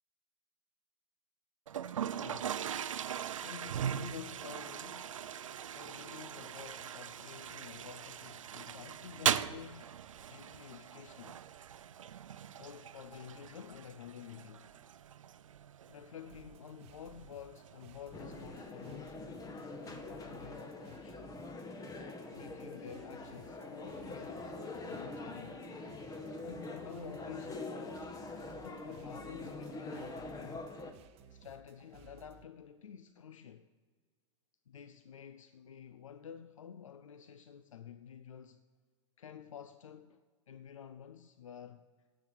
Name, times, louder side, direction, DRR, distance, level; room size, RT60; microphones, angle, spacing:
Toilet flush, 1.7-18.7, right 9 dB, 85° right, 0.5 m, -40 dB
voice 1, 2.0-2.7 3.4-5.2 5.7-10.0 10.3-11.5 12.6-14.7 15.9-21.2 22.3-25.6 26.4-28.2 28.6-30.8 31.3-33.7 34.7-38.6 39.2-41.9, left 8 dB, 85° left, 0.5 m, -50 dB
sound 1, 16.3-32.4, right 8 dB, 40° right, 0.8 m, -60 dB
sound 2, 18.1-30.9, left 2 dB, 20° left, 1.4 m, -44 dB
9.6 x 8.0 x 8.9 m
hypercardioid pair, 105°, 16 cm